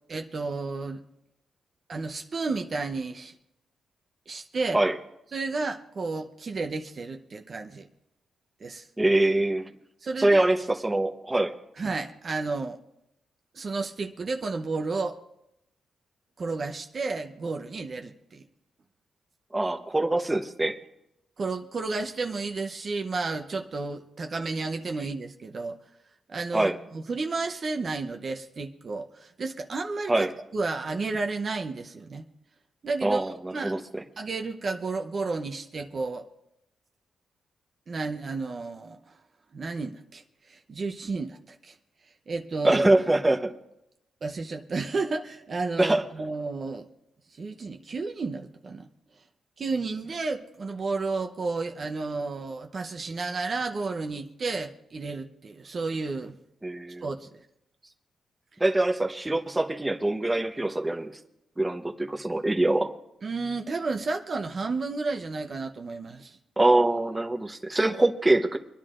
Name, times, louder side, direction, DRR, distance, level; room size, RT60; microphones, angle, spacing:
voice 1, 0.1-1.0 1.9-3.3 4.3-4.8 5.3-7.9 8.6-8.9 10.0-10.4 11.8-12.8 13.5-15.2 16.4-18.4 21.4-25.8 26.3-30.3 30.5-32.3 32.8-33.7 34.2-36.3 37.9-39.2 39.5-41.8 42.3-42.8 44.2-46.9 47.3-48.9 49.6-56.4 57.0-57.4 63.2-66.4, right 3 dB, 45° right, 5 dB, 0.8 m, -32 dB
voice 2, 9.0-9.7 10.2-11.5 19.5-20.8 26.5-26.7 30.1-30.3 33.0-34.0 42.6-43.5 45.8-46.0 56.6-57.0 58.6-61.1 61.6-62.9 66.6-68.6, right 2 dB, 15° right, 4 dB, 0.9 m, -24 dB
25.5 x 10.5 x 2.5 m, 0.84 s
cardioid pair, 105°, 0 cm